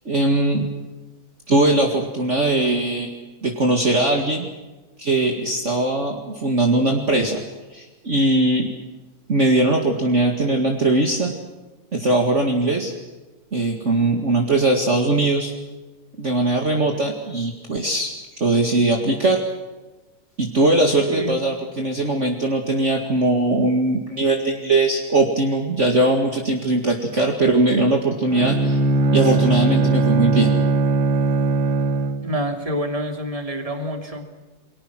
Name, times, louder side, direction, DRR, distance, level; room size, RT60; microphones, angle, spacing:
voice 1, 0.1-0.7 1.5-3.1 3.4-4.5 5.0-7.4 7.7-8.7 9.3-11.3 11.9-12.9 13.5-15.5 16.2-18.1 18.4-19.4 20.4-28.8 29.1-30.5, right 2 dB, 40° right, 2 dB, 2.3 m, -20 dB
Bowed string instrument, 28.3-32.4, right 3 dB, 60° right, 1.9 m, -20 dB
voice 2, 32.2-34.2, equal, 15° right, 4 dB, 2.9 m, -27 dB
29.5 x 22.5 x 6.2 m, 1.2 s
omnidirectional pair, 2.1 m